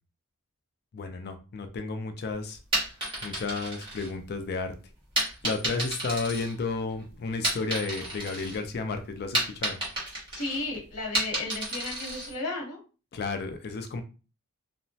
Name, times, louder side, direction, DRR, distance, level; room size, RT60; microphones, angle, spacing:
voice 1, 0.9-2.6 3.2-4.7 5.4-9.8 13.1-14.0, left 3 dB, 45° left, 7 dB, 0.4 m, -32 dB
sound 1, 2.6-4.5 5.2-6.9 7.3-8.6 8.9-12.3, right 1 dB, 25° right, 1.3 m, -31 dB
voice 2, 10.3-12.8, left 2 dB, 70° left, 1 dB, 1.0 m, -34 dB
2.9 x 2.1 x 2.6 m, 0.34 s
head